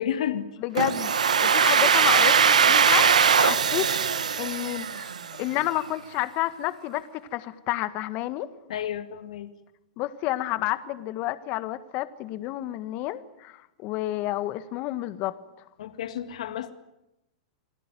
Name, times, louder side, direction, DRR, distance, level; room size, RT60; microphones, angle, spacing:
voice 1, 0.0-0.5 8.7-9.5 15.8-16.7, left 10 dB, 70° left, 8 dB, 2.1 m, -31 dB
voice 2, 0.6-3.9 4.4-5.1 5.4-8.5 10.0-15.4, left 16 dB, 45° left, 12 dB, 1.7 m, -30 dB
Domestic sounds home sounds, 0.8-5.5, right 7 dB, 90° right, 1.3 m, -21 dB
28.0 x 19.5 x 9.3 m, 0.91 s
hypercardioid pair, 115°, 4 cm